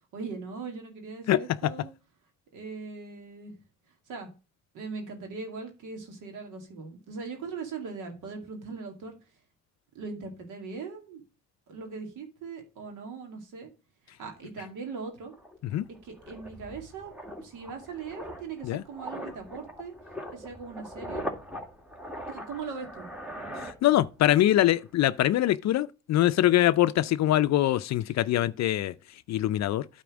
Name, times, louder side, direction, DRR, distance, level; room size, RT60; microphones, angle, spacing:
voice 1, 0.1-1.9 2.5-3.5 4.1-4.3 4.7-9.2 9.9-11.2 11.7-13.7 14.2-15.3 16.0-17.1 17.4-19.9 20.3-21.3 22.3-23.1, right 4 dB, 85° right, 2.2 m, -40 dB
sound 1, 14.9-15.0 15.3-24.4 24.6-24.9, equal, 5° right, 1.9 m, -41 dB
voice 2, 23.6-28.9 29.3-29.8, left 13 dB, 60° left, 0.4 m, -23 dB
9.2 x 4.2 x 6.2 m
cardioid pair, 90°, 30 cm